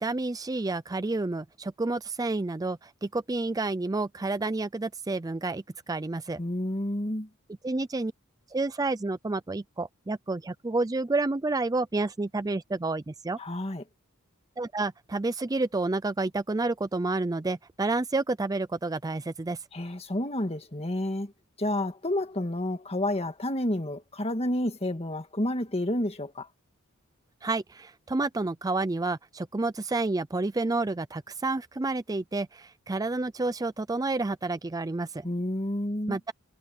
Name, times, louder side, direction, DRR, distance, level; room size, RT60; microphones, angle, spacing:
voice 1, 0.0-6.4 7.6-8.1 8.5-13.4 14.6-19.6 27.4-35.3 36.1-36.3, right 2 dB, 15° right, 0.4 m, -29 dB
voice 2, 6.4-7.3 13.4-13.8 19.7-21.3 21.6-26.5 35.2-36.2, left 1 dB, 30° left, 1.8 m, -30 dB
head